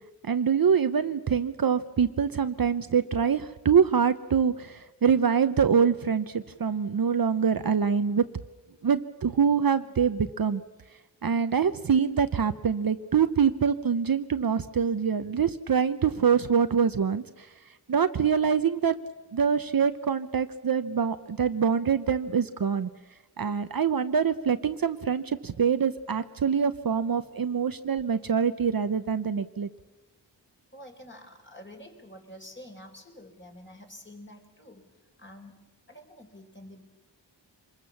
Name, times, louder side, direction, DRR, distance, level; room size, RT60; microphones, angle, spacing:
voice 1, 0.3-8.2 8.8-10.6 11.2-17.5 17.9-19.0 19.3-22.9 23.4-29.7, right 6 dB, 55° right, 11 dB, 0.8 m, -25 dB
voice 2, 30.7-34.8 35.2-36.8, left 1 dB, 25° left, 3 dB, 4.0 m, -48 dB
25.5 x 21.0 x 7.2 m, 1.2 s
wide cardioid pair, 95°, 43 cm